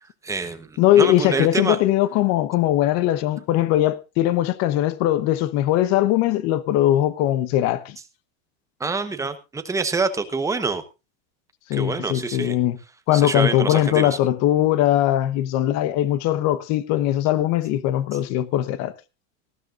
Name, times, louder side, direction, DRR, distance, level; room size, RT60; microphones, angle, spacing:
voice 1, 0.2-1.8 8.8-10.8 11.7-12.6 13.1-14.2, right 4 dB, 10° right, 1.0 m, -26 dB
voice 2, 0.8-8.0 11.7-12.8 13.1-18.9, left 13 dB, 40° left, 1.1 m, -20 dB
19.0 x 13.5 x 2.5 m
supercardioid pair, 160°, 40 cm